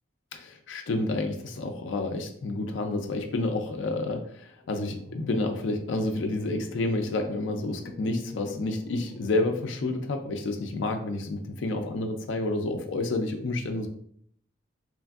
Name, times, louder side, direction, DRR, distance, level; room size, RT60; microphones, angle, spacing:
voice 1, 0.3-13.9, left 2 dB, 65° left, 4 dB, 0.4 m, -29 dB
sound 1, 4.6-10.7, left 1 dB, 30° left, 0.9 m, -47 dB
3.1 x 2.5 x 2.3 m, 0.64 s
head